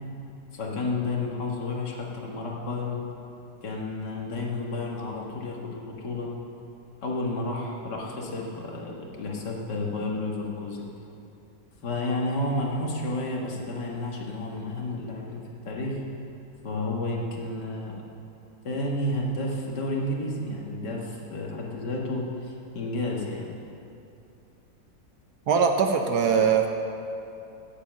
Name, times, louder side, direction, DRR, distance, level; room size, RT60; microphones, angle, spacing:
voice 1, 0.5-3.0 3.6-6.3 7.0-10.9 11.8-16.0 16.6-18.0 18.6-23.5, left 2 dB, 70° left, -2 dB, 2.1 m, -31 dB
voice 2, 25.5-26.7, right 6 dB, 65° right, 5 dB, 1.3 m, -21 dB
9.9 x 8.2 x 7.4 m, 2.7 s
omnidirectional pair, 1.9 m